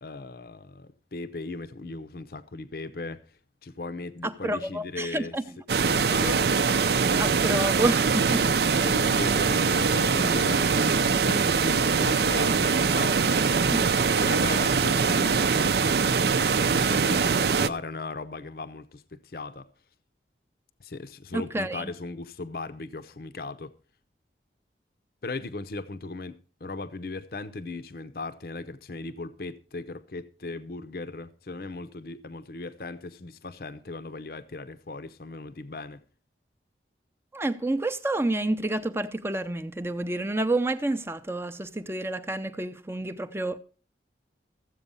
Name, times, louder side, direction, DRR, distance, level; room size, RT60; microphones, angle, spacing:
voice 1, 0.0-3.2 3.6-5.3 5.9-6.5 8.1-8.5 8.8-13.4 14.2-16.0 16.7-19.7 20.8-23.7 25.2-36.0, left 3 dB, 55° left, 0.7 m, -37 dB
voice 2, 4.2-5.4 7.2-8.4 13.7-14.0 21.3-21.9 37.3-43.6, right 2 dB, 15° right, 0.6 m, -29 dB
sound 1, 5.7-17.7, right 5 dB, 65° right, 0.6 m, -23 dB
14.5 x 8.0 x 5.4 m
head